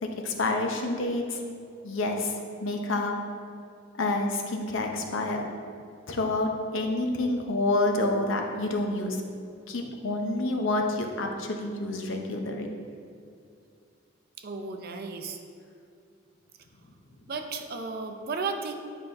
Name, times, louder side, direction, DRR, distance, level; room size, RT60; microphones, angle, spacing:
voice 1, 0.0-1.4 1.8-2.3 2.6-3.2 4.0-5.4 6.1-9.2 9.7-12.7, left 2 dB, 70° left, 3 dB, 0.7 m, -28 dB
voice 2, 14.4-15.4 17.2-18.7, right 4 dB, 50° right, 5 dB, 0.5 m, -34 dB
9.2 x 5.3 x 2.6 m, 2.4 s
head